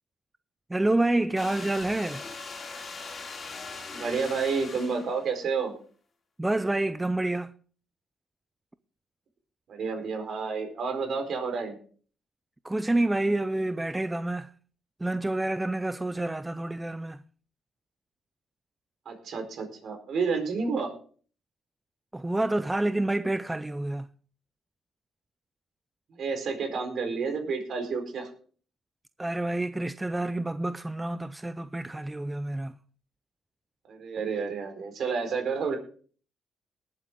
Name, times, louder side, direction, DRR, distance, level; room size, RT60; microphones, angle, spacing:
voice 1, 0.7-2.2 6.4-7.5 12.6-14.5 15.0-17.2 22.1-24.1 29.2-32.8, right 2 dB, 10° right, 0.5 m, -28 dB
sound 1, 1.4-5.4, left 4 dB, 40° left, 3.3 m, -40 dB
voice 2, 3.9-5.7 9.7-11.8 19.1-20.9 26.2-28.3 33.9-35.8, right 5 dB, 60° right, 4.3 m, -30 dB
19.5 x 8.2 x 3.7 m
cardioid pair, 90°, 0 cm